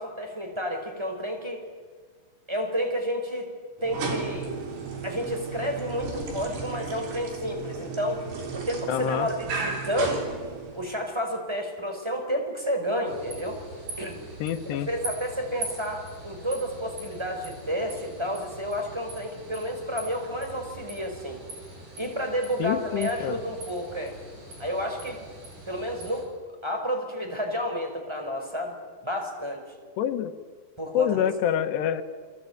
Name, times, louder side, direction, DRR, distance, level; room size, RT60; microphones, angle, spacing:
voice 1, 0.0-1.6 2.5-3.5 3.8-4.5 5.0-8.2 8.5-10.3 10.8-13.6 14.0-14.2 14.9-21.4 22.0-24.1 24.6-25.2 25.7-26.3 26.6-28.7 29.0-29.6 30.8-31.3, equal, 5° right, 4 dB, 4.4 m, -30 dB
sound 1, 3.8-11.0, right 4 dB, 75° right, 6.0 m, -34 dB
voice 2, 8.9-9.3 14.4-14.9 22.6-23.4 30.0-30.3 30.9-32.0, left 10 dB, 85° left, 9 dB, 3.5 m, -26 dB
sound 2, 13.0-26.2, right 2 dB, 45° right, 7.9 m, -42 dB
28.5 x 22.0 x 9.4 m, 1.5 s
omnidirectional pair, 4.7 m